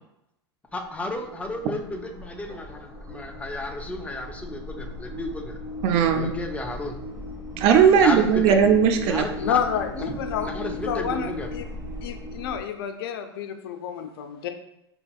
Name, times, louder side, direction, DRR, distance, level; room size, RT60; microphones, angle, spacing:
voice 1, 0.7-5.6 6.1-7.0 8.0-8.6 9.0-9.6 10.0-10.1 10.4-11.5, left 2 dB, 10° left, 4 dB, 0.4 m, -33 dB
sound 1, 0.7-12.6, left 1 dB, 25° right, 1.2 m, -37 dB
voice 2, 5.8-6.3 7.6-9.3, right 7 dB, 45° right, 5 dB, 0.5 m, -18 dB
voice 3, 9.4-11.7 12.0-14.5, left 8 dB, 65° left, 6 dB, 0.5 m, -30 dB
4.5 x 2.8 x 2.3 m, 0.86 s
hypercardioid pair, 95°, 14 cm